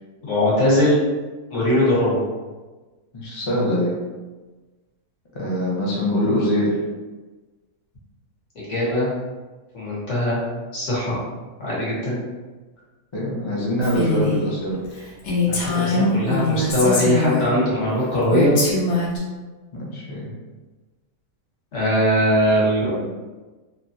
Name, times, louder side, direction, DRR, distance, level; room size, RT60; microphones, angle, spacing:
voice 1, 0.2-1.0 1.5-2.2 8.5-9.1 9.7-10.4 10.7-11.2 11.6-12.2 15.5-18.6 21.7-23.1, equal, 55° left, -8 dB, 1.4 m, -20 dB
voice 2, 3.1-4.0 5.3-6.7 13.1-14.8 19.9-20.3, equal, 35° left, -5 dB, 0.4 m, -23 dB
Female speech woman speaking, 13.8-14.4 14.8-14.9 15.2-17.5 18.3-19.2, left 2 dB, 80° left, 1.3 m, -22 dB
3.1 x 2.3 x 2.6 m, 1.3 s
omnidirectional pair, 1.5 m